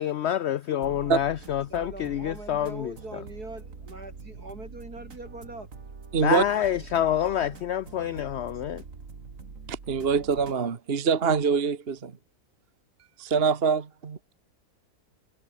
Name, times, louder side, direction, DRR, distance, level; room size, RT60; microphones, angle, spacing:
voice 1, 0.0-2.9 6.2-8.8, left 10 dB, 75° left, 0.6 m, -27 dB
voice 2, 0.7-1.2 1.7-5.7 6.1-7.2 8.0-8.8, right 2 dB, 75° right, 7.6 m, -43 dB
sound 1, 0.8-10.6, right 4 dB, 60° right, 2.7 m, -44 dB
voice 3, 6.1-6.4 9.7-12.1 13.2-14.2, right 5 dB, 40° right, 1.5 m, -24 dB
omnidirectional pair, 1.6 m